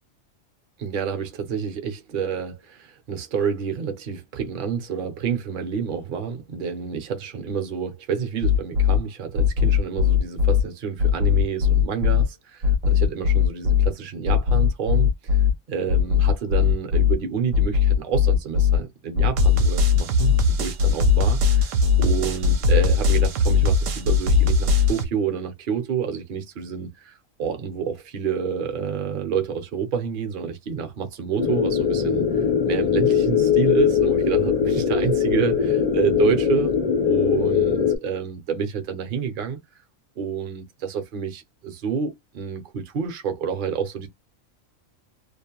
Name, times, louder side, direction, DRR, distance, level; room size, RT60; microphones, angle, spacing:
voice 1, 0.8-15.1 15.7-21.7 22.0-27.1 27.4-32.2 32.7-36.7 37.0-39.6 40.2-44.1, right 7 dB, 50° right, 0.7 m, -28 dB
sound 1, 8.4-9.0 9.4-10.6 11.0-12.2 12.6-13.9 14.3-15.5 15.9-17.1 17.5-18.8 19.2-25.0, left 6 dB, 75° right, 0.9 m, -19 dB
sound 2, 31.4-37.9, left 7 dB, 40° left, 0.6 m, -21 dB
2.4 x 2.1 x 2.9 m
omnidirectional pair, 1.4 m